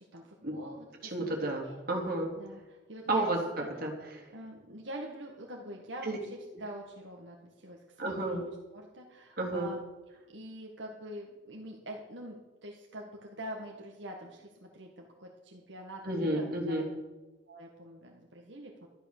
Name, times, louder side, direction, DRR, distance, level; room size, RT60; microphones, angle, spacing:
voice 1, 0.0-1.7 2.4-3.3 3.6-3.7 4.3-9.8 10.3-16.8 17.5-18.9, right 1 dB, 80° right, 0 dB, 1.8 m, -45 dB
voice 2, 1.0-2.3 3.1-3.4 3.8-4.2 6.0-6.2 8.0-8.4 9.4-9.7 16.0-16.9, right 2 dB, 55° right, 0 dB, 3.4 m, -31 dB
13.0 x 11.5 x 6.7 m, 1.2 s
head